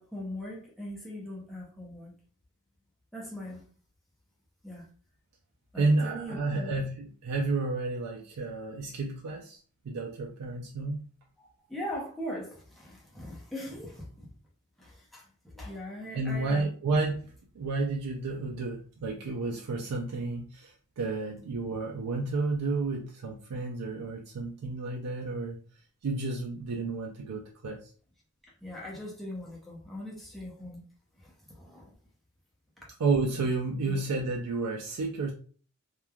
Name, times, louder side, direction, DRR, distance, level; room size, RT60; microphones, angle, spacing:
voice 1, 0.0-2.1 3.1-3.6 4.6-4.9 5.7-6.7 11.4-14.3 14.8-15.3 15.5-16.7 28.6-30.8 31.2-31.9 33.8-34.0, left 1 dB, ahead, -5 dB, 0.6 m, -40 dB
voice 2, 5.8-9.6 9.8-11.0 16.1-25.6 26.0-27.9 33.0-35.3, right 3 dB, 80° right, 0 dB, 0.4 m, -31 dB
3.1 x 2.2 x 2.2 m, 0.41 s
head